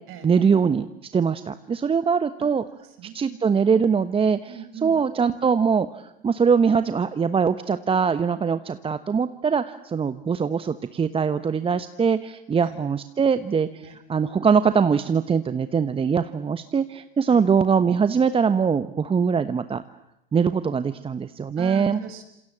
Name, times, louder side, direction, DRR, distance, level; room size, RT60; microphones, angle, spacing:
voice 1, 0.2-0.8 1.1-2.6 3.1-4.4 4.8-19.8 20.3-22.0, right 6 dB, 20° right, 12 dB, 1.1 m, -22 dB
voice 2, 2.4-3.6 4.5-5.0 12.6-12.8 13.8-14.0 17.3-17.4 21.6-22.2, right 7 dB, 45° right, 8 dB, 6.0 m, -40 dB
28.5 x 27.5 x 7.5 m, 0.83 s
hypercardioid pair, 85°, 29 cm